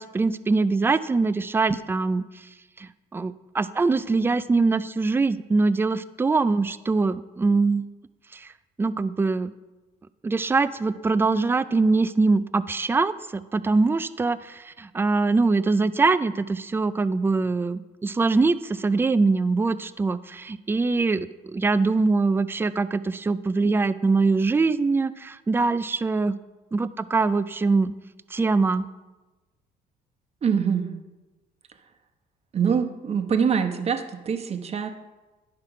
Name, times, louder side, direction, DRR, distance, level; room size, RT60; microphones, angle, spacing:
voice 1, 0.0-2.2 2.8-7.9 8.3-8.5 8.8-9.5 10.2-26.4 26.7-27.9 28.3-28.9, right 3 dB, 15° right, 14 dB, 0.3 m, -23 dB
voice 2, 30.4-30.9 32.5-34.9, right 7 dB, 40° right, 5 dB, 1.0 m, -24 dB
10.5 x 5.8 x 4.9 m, 1.1 s
cardioid pair, 110°, 17 cm